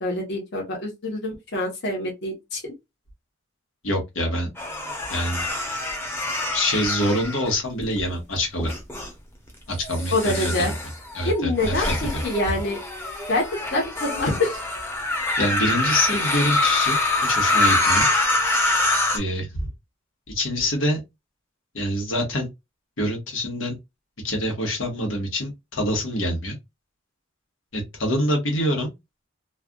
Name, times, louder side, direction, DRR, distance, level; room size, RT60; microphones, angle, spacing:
voice 1, 0.0-2.7 10.1-10.7 11.2-12.8 13.3-13.4 13.7-14.6, left 2 dB, 60° left, 1.1 m, -25 dB
voice 2, 3.8-4.5 5.1-5.4 6.5-8.7 9.7-10.7 11.1-12.2 15.4-18.1 19.1-19.5 20.3-21.0 21.7-22.5 23.0-23.8 24.2-26.6 27.7-28.9, left 1 dB, 80° left, 1.2 m, -25 dB
sound 1, 4.6-8.0 8.6-9.1 9.8-19.2, left 2 dB, 10° left, 0.8 m, -25 dB
3.2 x 2.4 x 2.3 m
head